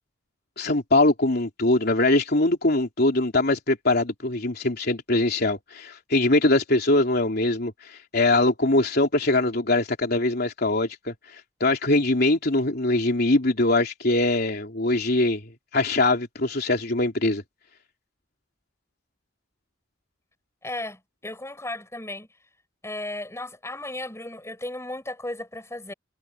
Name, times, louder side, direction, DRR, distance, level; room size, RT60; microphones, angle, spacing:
voice 1, 0.6-15.4 15.7-17.4, left 2 dB, 55° left, 3.4 m, -22 dB
voice 2, 20.6-22.3 22.8-25.9, left 1 dB, 15° left, 7.5 m, -35 dB
head